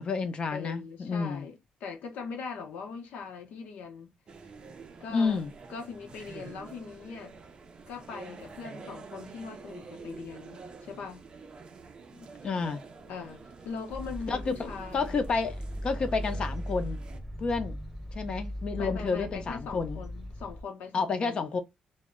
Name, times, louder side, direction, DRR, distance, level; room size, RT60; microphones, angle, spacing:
voice 1, 0.0-1.5 5.1-5.5 12.1-12.8 14.3-17.0 17.4-17.8 18.1-20.0 20.9-21.6, left 4 dB, 40° left, 0.5 m, -30 dB
voice 2, 0.5-4.1 5.0-5.4 5.7-7.3 7.9-11.3 13.1-15.2 18.8-21.5, left 5 dB, 80° left, 0.7 m, -41 dB
sound 1, 4.3-17.2, right 4 dB, 35° right, 0.4 m, -48 dB
sound 2, 13.9-20.6, equal, ahead, 0.9 m, -38 dB
2.1 x 2.1 x 3.5 m
cardioid pair, 130°, 3 cm